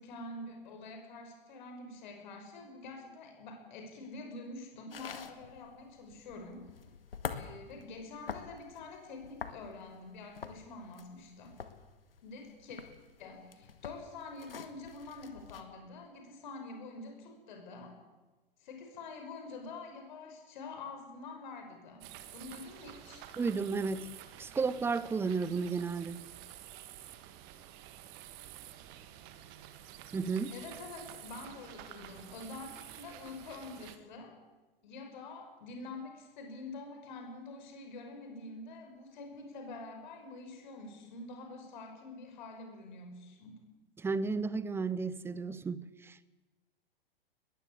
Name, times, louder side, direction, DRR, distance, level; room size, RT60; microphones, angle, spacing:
voice 1, 0.0-6.6 7.3-11.6 12.2-12.8 13.2-17.9 18.6-22.1 22.3-23.3 30.5-34.3 34.8-43.6, left 3 dB, 50° left, 5.8 m, -46 dB
sound 1, 4.9-15.6, left 6 dB, 70° left, 2.0 m, -46 dB
sound 2, 22.0-34.0, right 12 dB, 35° right, 1.8 m, -50 dB
voice 2, 23.4-24.1 24.4-26.2 30.1-30.6 44.0-46.3, right 4 dB, 10° right, 0.7 m, -33 dB
21.0 x 15.5 x 8.5 m
figure-of-eight pair, 105°, 30 cm